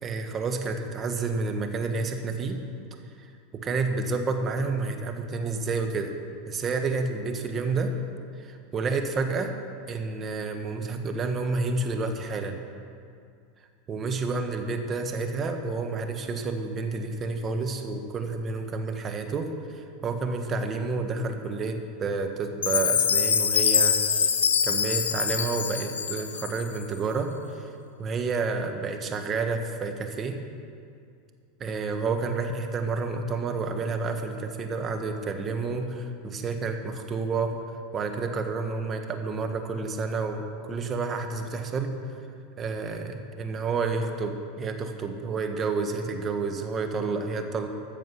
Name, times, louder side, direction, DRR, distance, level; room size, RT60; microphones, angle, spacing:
voice 1, 0.0-2.6 3.5-6.1 6.5-7.9 8.4-9.5 9.9-12.6 13.9-27.7 28.0-30.4 31.6-37.6 37.9-41.9 42.6-47.7, right 4 dB, 30° right, 5 dB, 1.4 m, -30 dB
Chime, 22.6-26.8, left 7 dB, 85° left, 0.6 m, -24 dB
14.0 x 7.2 x 5.9 m, 2.3 s
hypercardioid pair, 95°, 0 cm